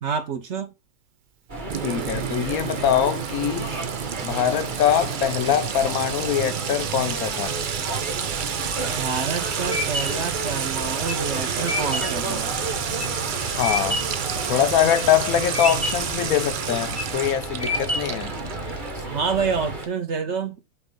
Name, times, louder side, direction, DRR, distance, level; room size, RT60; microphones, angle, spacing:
voice 1, 0.0-0.7 8.8-12.5 19.0-20.6, right 5 dB, 50° right, 1.3 m, -28 dB
sound 1, 1.5-19.9, right 2 dB, 35° right, 1.6 m, -33 dB
Sink (filling or washing) / Trickle dribble / Fill (with liquid), 1.7-19.1, right 8 dB, 75° right, 0.4 m, -30 dB
voice 2, 1.8-3.7 4.2-7.5 13.4-14.0 14.5-18.3, left 10 dB, 75° left, 1.0 m, -23 dB
sound 2, 8.8-14.3 14.7-15.3 15.5-16.2 16.7-17.2 17.6-18.3, left 2 dB, 15° left, 0.6 m, -29 dB
6.5 x 3.1 x 5.2 m
omnidirectional pair, 1.6 m